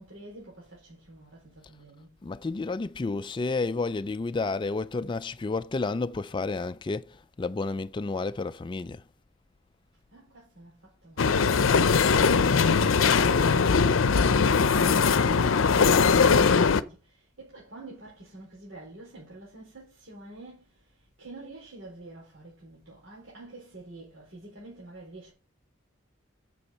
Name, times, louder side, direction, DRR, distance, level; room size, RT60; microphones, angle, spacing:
voice 1, 0.0-2.2 10.1-11.6 12.1-25.3, right 2 dB, 70° right, 4.3 m, -47 dB
voice 2, 2.2-9.0, left 3 dB, 25° left, 0.4 m, -31 dB
sound 1, 11.2-16.8, left 5 dB, 85° left, 0.6 m, -21 dB
8.1 x 7.0 x 5.6 m
head